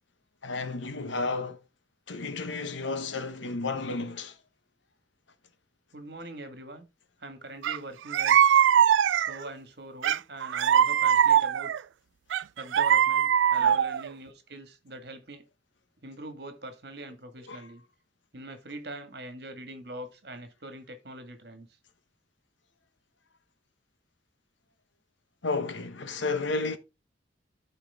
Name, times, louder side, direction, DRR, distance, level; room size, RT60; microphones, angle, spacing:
voice 1, 0.4-1.6 2.1-4.4 13.5-13.8 17.5-17.7 25.4-26.8, left 3 dB, 80° left, 1.0 m, -32 dB
voice 2, 5.9-6.9 7.2-8.6 9.3-11.7 12.6-15.5 16.0-17.8 18.3-21.7, right 1 dB, 60° right, 1.7 m, -43 dB
sound 1, 7.6-7.8 8.1-9.5 10.0-11.8 12.3-14.1, right 9 dB, 80° right, 0.3 m, -22 dB
13.5 x 4.5 x 3.5 m
head